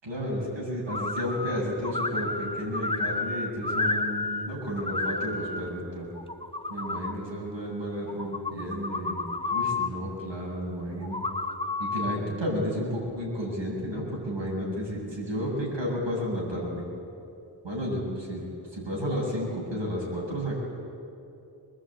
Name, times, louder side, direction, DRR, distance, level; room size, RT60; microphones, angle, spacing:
voice 1, 0.0-6.1 6.7-9.2 9.5-11.2 11.8-16.8 17.6-18.4 18.7-20.6, equal, 75° right, -3 dB, 7.9 m, -32 dB
sound 1, 0.9-1.6 1.8-4.5 4.7-5.6 6.2-7.1 8.1-9.9 11.0-12.2, left 3 dB, 10° left, 1.1 m, -31 dB
24.0 x 21.0 x 9.0 m, 2.7 s
wide cardioid pair, 95°, 45 cm